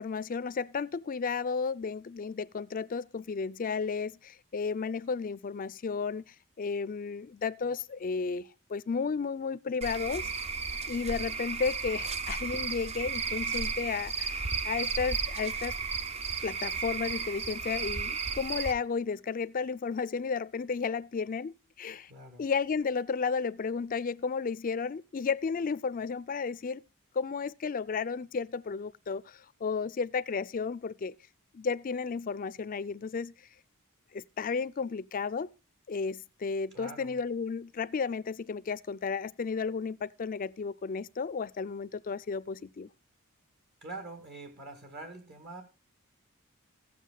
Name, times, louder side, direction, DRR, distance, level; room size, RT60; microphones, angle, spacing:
voice 1, 0.0-10.3 10.9-15.7 16.4-22.1 22.4-26.8 27.1-31.1 31.5-33.3 34.1-35.5 35.9-42.9, left 5 dB, 40° left, 0.4 m, -33 dB
Cricket / Frog, 9.8-18.7, right 5 dB, 30° right, 0.5 m, -34 dB
voice 2, 22.1-22.5 36.7-37.2 43.8-45.6, right 2 dB, 50° right, 1.7 m, -44 dB
15.0 x 8.3 x 2.2 m
head